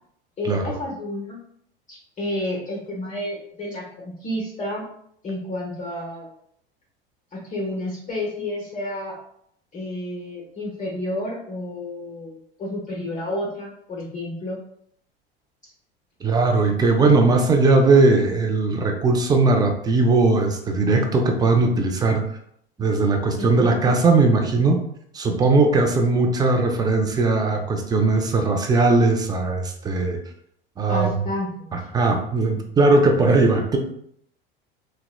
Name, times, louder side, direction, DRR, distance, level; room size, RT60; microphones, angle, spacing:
voice 1, 0.4-1.4 1.9-4.8 5.2-6.3 7.3-9.2 9.7-14.6 23.4-24.0 30.9-31.7, left 1 dB, 25° left, -4 dB, 0.7 m, -30 dB
voice 2, 16.2-22.2 22.8-24.8 25.1-30.2 30.8-31.1 31.7-33.8, right 3 dB, 15° right, 3 dB, 0.4 m, -19 dB
2.8 x 2.1 x 2.3 m, 0.69 s
hypercardioid pair, 90°, 30 cm